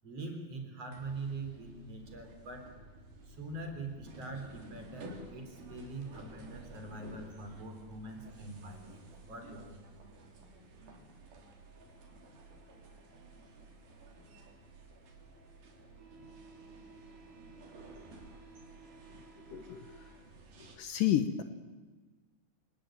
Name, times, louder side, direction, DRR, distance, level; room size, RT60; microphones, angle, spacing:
voice 1, 0.0-2.7 3.3-9.8, right 2 dB, 40° right, 5 dB, 4.5 m, -43 dB
sound 1, 0.9-20.8, right 2 dB, 70° right, 5.1 m, -53 dB
voice 2, 19.5-20.1 20.6-21.4, left 11 dB, 70° left, 9 dB, 2.4 m, -32 dB
28.0 x 19.0 x 9.0 m, 1.3 s
omnidirectional pair, 4.4 m